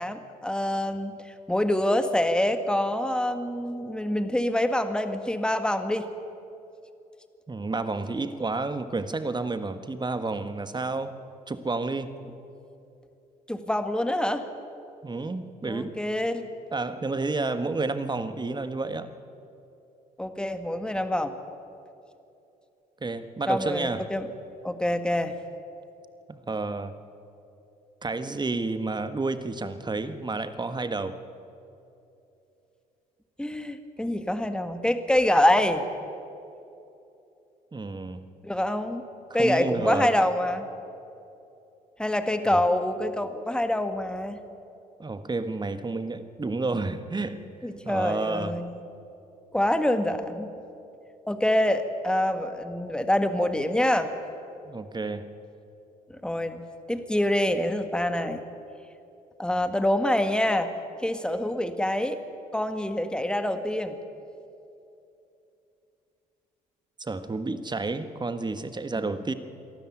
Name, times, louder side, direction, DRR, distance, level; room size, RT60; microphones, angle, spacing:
voice 1, 0.0-6.1 13.5-14.5 15.7-16.5 20.2-21.3 23.5-24.3 24.6-25.3 33.4-35.8 38.4-39.0 39.3-40.6 42.0-44.4 47.6-48.8 49.5-50.5 51.3-54.1 56.1-56.6 56.9-58.4 59.4-60.7 61.0-62.2 62.5-64.0 69.0-69.2, left 1 dB, 5° left, 9 dB, 1.7 m, -26 dB
voice 2, 7.5-11.2 11.5-12.1 15.0-16.0 16.7-19.1 23.0-24.0 26.3-26.9 28.0-31.2 37.7-38.3 39.3-40.1 42.5-42.6 45.0-47.4 47.8-48.5 54.6-55.3 67.0-69.3, right 3 dB, 20° right, 11 dB, 1.5 m, -30 dB
23.0 x 13.0 x 9.2 m, 2.8 s
hypercardioid pair, 55°, 20 cm